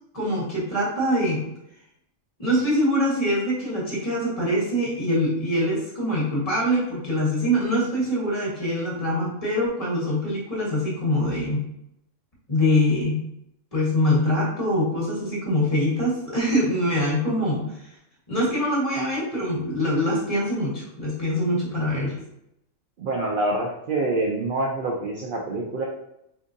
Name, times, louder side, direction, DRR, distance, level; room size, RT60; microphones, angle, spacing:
voice 1, 0.1-1.5 2.4-11.6 12.5-13.2 13.7-17.6 18.3-22.1, equal, 30° left, -5 dB, 1.0 m, -24 dB
voice 2, 23.0-25.8, right 2 dB, 70° right, -1 dB, 0.5 m, -26 dB
3.7 x 2.6 x 2.6 m, 0.80 s
omnidirectional pair, 1.4 m